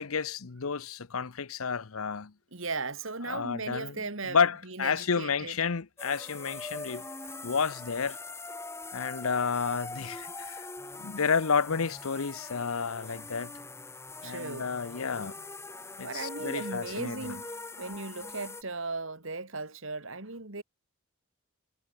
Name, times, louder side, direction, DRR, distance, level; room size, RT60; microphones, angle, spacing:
voice 1, 0.0-2.3 3.3-4.0 4.3-7.0 7.4-8.2 8.9-10.7 11.0-13.5 14.2-15.4 16.0-17.3, left 5 dB, 75° left, 0.8 m, -30 dB
voice 2, 2.5-5.6 14.2-14.7 16.0-17.5 17.8-20.6, right 3 dB, 65° right, 2.7 m, -37 dB
sound 1, 6.0-18.6, left 3 dB, 10° left, 3.4 m, -42 dB
head